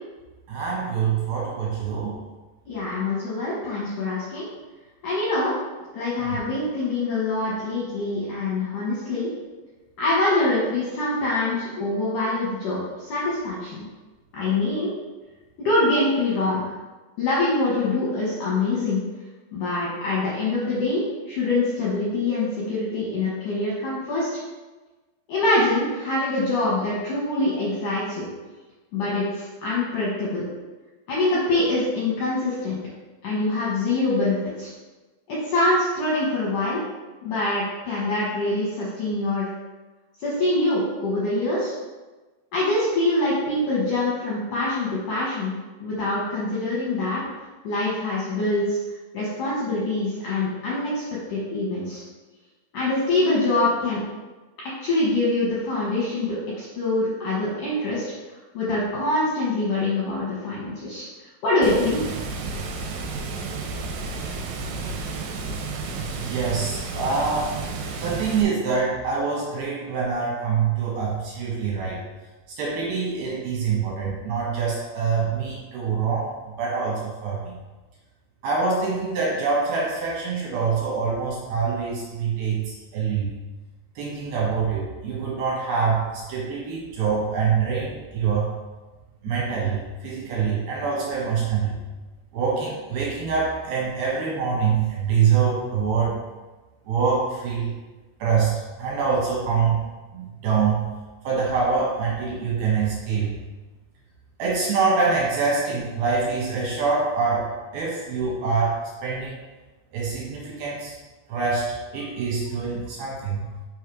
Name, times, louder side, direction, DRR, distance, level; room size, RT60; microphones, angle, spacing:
voice 1, 0.5-2.1 6.2-6.4 66.0-67.6 67.9-72.0 72.6-76.3 76.6-77.5 78.4-83.4 84.0-88.5 89.2-91.8 92.3-96.1 96.9-97.8 98.2-99.8 100.1-100.9 101.2-103.3 104.4-109.4 109.9-111.0 111.3-113.5, right 5 dB, 70° right, -5 dB, 2.7 m, -25 dB
voice 2, 2.7-4.5 5.0-5.6 5.9-9.3 10.0-13.9 14.3-14.9 15.6-16.6 17.2-19.0 19.5-24.3 25.3-28.2 28.9-30.5 31.1-32.8 33.2-34.7 35.3-36.8 37.2-39.5 40.2-41.7 42.5-45.6 45.8-47.2 47.6-48.8 49.1-51.0 51.3-52.0 52.7-54.0 54.6-58.1 58.5-61.1 61.4-62.1, left 2 dB, 70° left, -6 dB, 1.9 m, -24 dB
Water, 61.6-68.4, right 4 dB, 85° right, 2.8 m, -32 dB
6.4 x 3.6 x 4.7 m, 1.2 s
omnidirectional pair, 5.1 m